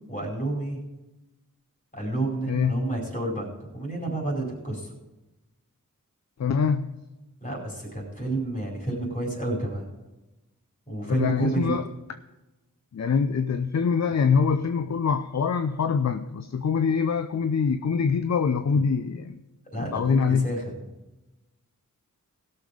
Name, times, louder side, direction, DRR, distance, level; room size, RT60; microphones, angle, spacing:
voice 1, 0.1-0.8 1.9-4.9 7.4-9.9 10.9-11.7 19.7-20.7, right 2 dB, 25° left, -1 dB, 5.0 m, -30 dB
voice 2, 2.5-2.8 6.4-6.9 11.1-11.8 12.9-19.4 19.8-20.5, left 6 dB, 50° left, 10 dB, 0.6 m, -24 dB
17.0 x 6.8 x 5.1 m, 1.0 s
wide cardioid pair, 60°, 34 cm